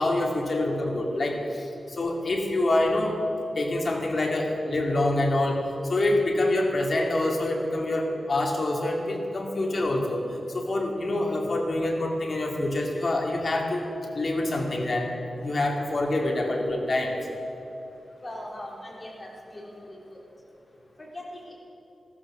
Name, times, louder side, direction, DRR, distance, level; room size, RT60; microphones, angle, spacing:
voice 1, 0.0-3.2 3.6-5.6 5.9-10.2 10.5-13.9 14.1-17.2, left 1 dB, 45° left, 0 dB, 2.5 m, -26 dB
voice 2, 18.2-20.2 21.0-21.5, left 1 dB, 20° left, -3 dB, 3.4 m, -40 dB
15.0 x 14.0 x 6.2 m, 2.9 s
wide cardioid pair, 135°, 0 cm